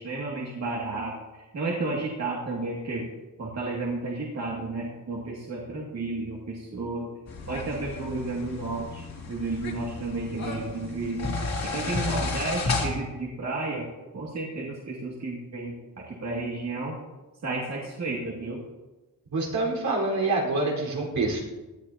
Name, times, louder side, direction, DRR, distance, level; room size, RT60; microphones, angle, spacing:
voice 1, 0.0-3.1 3.4-7.1 7.5-13.9 14.1-17.0 17.4-18.6, right 2 dB, 50° right, -3 dB, 2.4 m, -32 dB
sound 1, 7.3-12.9, left 3 dB, 50° left, 2.7 m, -32 dB
voice 2, 19.3-21.4, right 2 dB, 80° right, -3 dB, 4.6 m, -26 dB
18.5 x 13.0 x 2.9 m, 1.1 s
wide cardioid pair, 135°, 34 cm